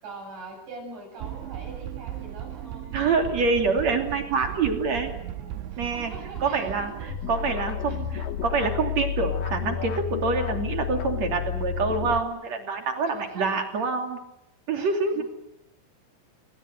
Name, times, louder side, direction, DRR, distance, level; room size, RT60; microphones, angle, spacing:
voice 1, 0.0-2.9 5.1-7.4 7.9-8.3 13.3-13.5 14.8-15.2, right 2 dB, 60° right, 3 dB, 10.0 m, -43 dB
sound 1, 1.2-7.2, right 12 dB, 75° right, 3.1 m, -37 dB
voice 2, 2.9-5.1 5.8-6.1 6.4-14.2 14.7-15.2, right 4 dB, 40° right, 5 dB, 3.3 m, -26 dB
sound 2, 7.1-12.2, left 8 dB, 65° left, 2.3 m, -31 dB
27.5 x 22.5 x 8.0 m, 0.84 s
omnidirectional pair, 5.8 m